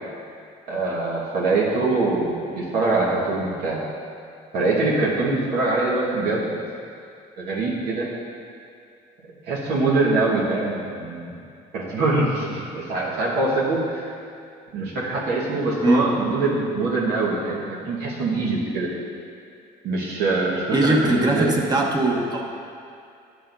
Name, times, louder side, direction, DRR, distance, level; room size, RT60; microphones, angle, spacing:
voice 1, 0.7-3.8 4.5-6.5 7.4-8.1 9.5-11.3 11.7-14.1 14.7-18.9 19.8-21.6, right 3 dB, 80° right, -6 dB, 1.6 m, -23 dB
voice 2, 20.7-22.4, right 2 dB, 25° right, -1 dB, 1.1 m, -20 dB
11.0 x 6.7 x 2.7 m, 2.4 s
cardioid pair, 110°, 17 cm